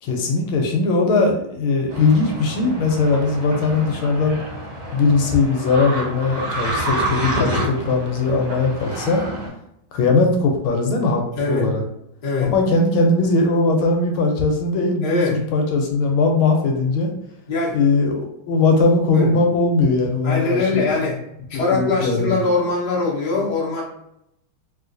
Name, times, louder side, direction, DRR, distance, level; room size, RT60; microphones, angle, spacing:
voice 1, 0.0-4.4 4.9-9.2 9.9-11.8 12.5-17.1 17.7-20.9 21.5-22.4, left 3 dB, 75° left, 2 dB, 1.4 m, -19 dB
sound 1, 1.9-9.5, right 1 dB, 55° right, 0.3 m, -28 dB
voice 2, 11.4-11.7 12.2-12.5 15.0-15.4 17.5-17.8 19.1-19.3 20.2-21.2 21.5-23.8, left 3 dB, 50° left, -6 dB, 0.5 m, -22 dB
3.1 x 3.0 x 2.5 m, 0.79 s
omnidirectional pair, 2.4 m